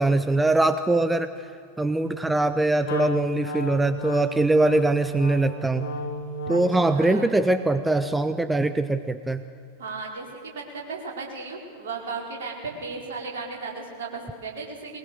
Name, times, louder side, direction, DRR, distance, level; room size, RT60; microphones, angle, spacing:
voice 1, 0.0-1.4 1.8-5.9 6.5-9.4, right 2 dB, 5° right, 11 dB, 0.7 m, -22 dB
Wind instrument woodwind instrument, 2.8-6.9, left 1 dB, 55° left, 2.7 m, -33 dB
voice 2, 6.5-7.3 9.8-15.0, right 4 dB, 60° right, -1 dB, 4.7 m, -35 dB
21.5 x 20.5 x 6.6 m, 2.5 s
figure-of-eight pair, 90°, 0 cm